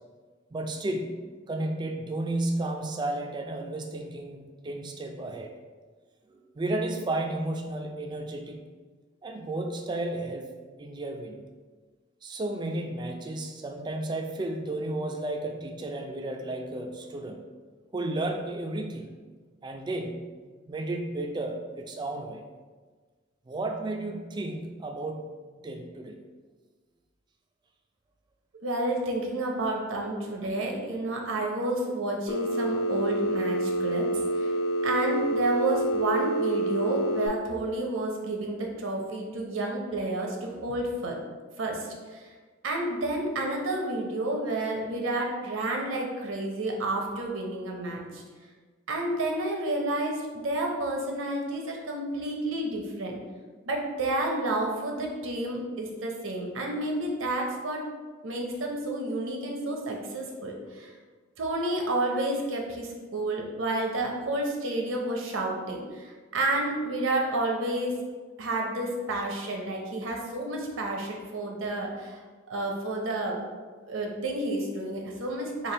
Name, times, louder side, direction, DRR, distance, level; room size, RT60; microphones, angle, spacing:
voice 1, 0.5-5.5 6.3-8.6 9.2-10.5 10.8-11.4 12.2-17.4 17.9-19.1 19.6-20.3 20.7-22.4 23.5-25.2 25.6-26.2 29.7-29.8, right 2 dB, 20° right, 3 dB, 0.3 m, -33 dB
voice 2, 28.6-34.1 34.4-34.5 34.8-41.2 41.6-42.3 42.6-48.2 48.9-53.2 53.7-57.8 58.2-60.9 61.4-68.0 68.4-72.2 72.5-73.4 73.9-75.7, right 2 dB, 80° right, 1 dB, 0.7 m, -30 dB
Telephone, 32.3-37.3, right 1 dB, 80° left, 0.4 m, -28 dB
3.3 x 2.5 x 3.8 m, 1.4 s
head